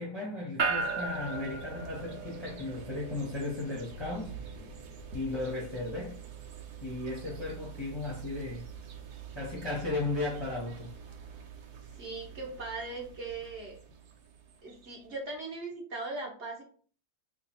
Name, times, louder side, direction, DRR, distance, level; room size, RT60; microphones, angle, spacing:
voice 1, 0.0-4.3 5.1-6.2 6.8-8.7 9.3-10.9, left 2 dB, 25° left, 0.6 m, -35 dB
sound 1, 0.6-14.9, right 4 dB, 85° right, 1.2 m, -40 dB
voice 2, 11.9-13.7 14.6-16.6, right 3 dB, 55° right, 1.0 m, -39 dB
3.0 x 2.4 x 4.2 m
omnidirectional pair, 1.6 m